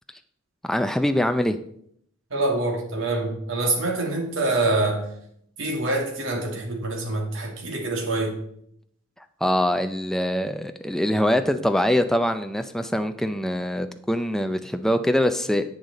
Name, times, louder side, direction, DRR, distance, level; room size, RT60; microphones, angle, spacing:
voice 1, 0.6-1.6 9.4-15.6, left 1 dB, ahead, 8 dB, 0.4 m, -23 dB
voice 2, 2.3-5.1 5.6-8.4, right 2 dB, 80° right, 1 dB, 2.4 m, -25 dB
10.5 x 8.1 x 4.0 m, 0.70 s
head